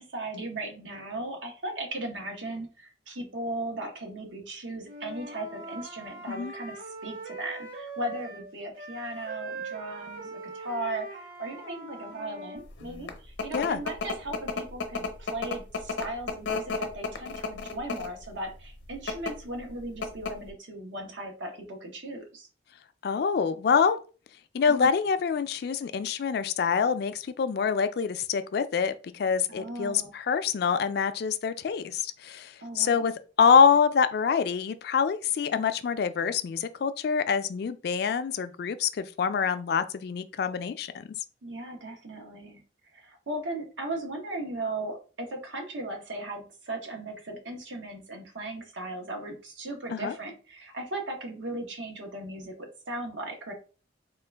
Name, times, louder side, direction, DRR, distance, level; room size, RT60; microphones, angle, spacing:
voice 1, 0.0-22.5 24.7-24.9 29.5-30.2 32.6-33.1 41.4-42.6 42.9-53.5, right 1 dB, 85° right, 1.0 m, -37 dB
Wind instrument woodwind instrument, 4.8-8.5 8.7-12.6, right 3 dB, 50° right, 1.1 m, -41 dB
sound 1, 12.8-18.2 18.9-19.3 19.7-19.8 20.0-20.5, left 4 dB, 75° left, 0.7 m, -32 dB
voice 2, 23.0-24.0 24.5-41.1 49.9-50.1, left 6 dB, 55° left, 0.3 m, -26 dB
3.7 x 2.4 x 3.3 m
head